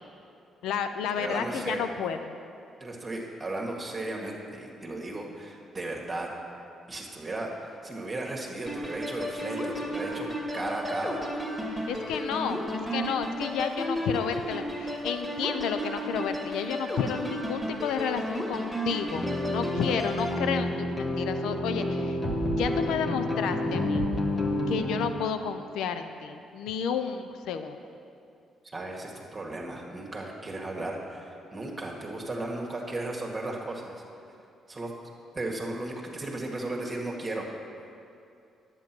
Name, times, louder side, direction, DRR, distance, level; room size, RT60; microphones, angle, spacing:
voice 1, 0.6-2.3 11.7-22.2 22.6-24.0 24.7-27.8, left 7 dB, 85° left, 9 dB, 0.5 m, -31 dB
voice 2, 1.2-1.9 2.8-6.3 6.9-10.3 10.5-11.2 28.7-34.0 34.7-34.9 35.3-37.5, right 2 dB, 25° right, -1 dB, 1.8 m, -35 dB
sound 1, 8.7-20.4, equal, 20° left, 2.3 m, -33 dB
sound 2, 19.1-25.1, left 1 dB, 40° left, 1.5 m, -29 dB
10.5 x 8.9 x 6.1 m, 2.6 s
cardioid pair, 90°, 0 cm